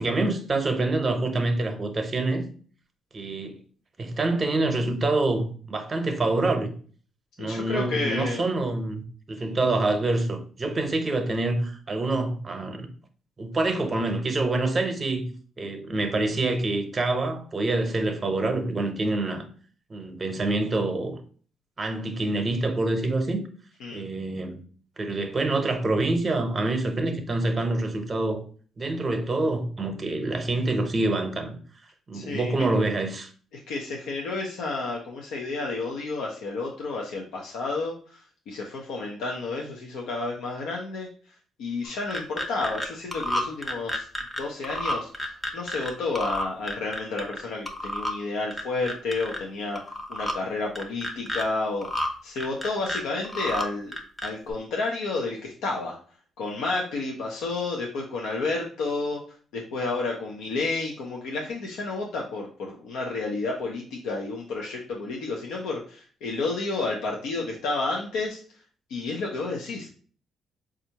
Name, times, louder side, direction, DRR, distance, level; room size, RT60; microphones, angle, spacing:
voice 1, 0.0-2.4 3.1-3.5 4.0-6.7 7.4-12.9 13.4-15.3 15.6-19.5 19.9-21.2 21.8-23.4 23.9-24.6 25.0-28.4 28.8-31.6 32.1-33.3, right 2 dB, 30° right, 0.7 m, -26 dB
voice 2, 7.4-8.4 23.8-24.0 32.1-32.6 33.7-41.1 41.6-44.1 44.4-53.9 54.2-56.0 56.4-59.2 59.5-68.4 68.9-69.9, left 3 dB, 90° left, 0.6 m, -31 dB
sound 1, 41.8-42.9 43.1-45.9 46.2-47.4 47.7-48.1 48.5-49.4 49.8-50.3 50.8-51.4 51.8-52.1 52.4-53.7 53.9-54.5, left 1 dB, 10° left, 0.6 m, -30 dB
4.3 x 2.4 x 2.8 m
cardioid pair, 90°, 0 cm